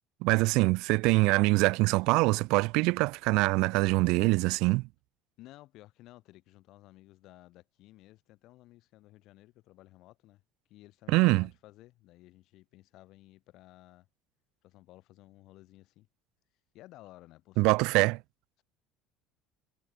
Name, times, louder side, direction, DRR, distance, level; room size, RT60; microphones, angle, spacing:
voice 1, 0.2-4.9 11.1-11.5 17.6-18.2, right 24 dB, 65° right, 0.8 m, -24 dB
voice 2, 5.4-10.4 10.7-14.1 14.6-16.1 16.7-18.2, left 17 dB, 50° left, 7.7 m, -55 dB
cardioid pair, 170°, 0 cm